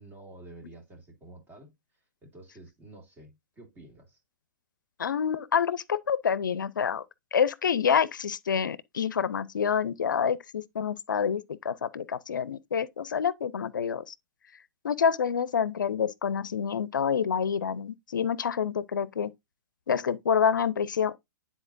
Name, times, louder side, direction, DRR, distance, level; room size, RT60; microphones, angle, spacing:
voice 1, 0.0-1.8 2.2-4.2, right 2 dB, 20° right, 2.1 m, -49 dB
voice 2, 5.0-7.0 7.3-14.1 14.8-19.3 19.9-21.2, left 7 dB, 80° left, 0.5 m, -27 dB
9.9 x 4.1 x 2.5 m
hypercardioid pair, 120°, 10 cm